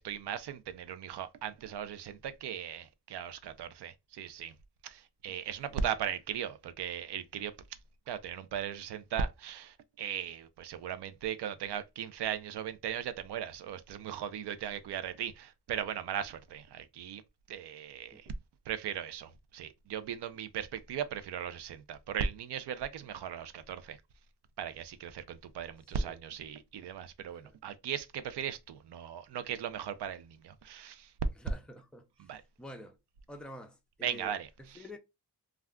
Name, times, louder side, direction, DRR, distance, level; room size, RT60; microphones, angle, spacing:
voice 1, 0.0-4.5 4.8-7.5 8.1-17.2 17.5-18.3 18.7-24.0 24.6-31.1 32.2-32.4 34.0-34.8, right 8 dB, 75° right, 0.5 m, -38 dB
voice 2, 31.4-32.1 32.6-33.0 33.3-34.3 34.6-35.0, left 1 dB, ahead, 0.3 m, -48 dB
2.4 x 2.2 x 3.5 m
wide cardioid pair, 135°, 41 cm